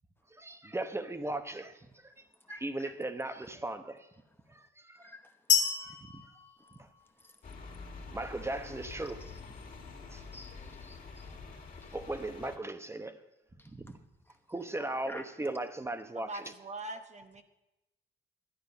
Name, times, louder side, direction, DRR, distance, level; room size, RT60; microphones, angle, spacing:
voice 1, 0.3-1.8 2.0-2.1 2.5-4.1 4.5-5.1 5.8-6.2 8.1-9.2 10.1-10.2 11.9-13.2 13.7-14.0 14.5-16.5, right 2 dB, 15° right, 1.0 m, -38 dB
voice 2, 2.5-2.9 5.0-5.3 5.6-5.7 8.8-8.9 10.3-11.3 11.8-12.0 13.6-13.7 15.1-15.2, left 1 dB, 10° left, 1.1 m, -50 dB
sound 1, 5.5-7.4, left 7 dB, 65° left, 1.3 m, -30 dB
sound 2, 7.4-12.6, left 4 dB, 45° left, 2.3 m, -47 dB
voice 3, 16.1-17.4, right 2 dB, 35° right, 0.9 m, -42 dB
12.0 x 10.0 x 5.5 m
cardioid pair, 90°, 20 cm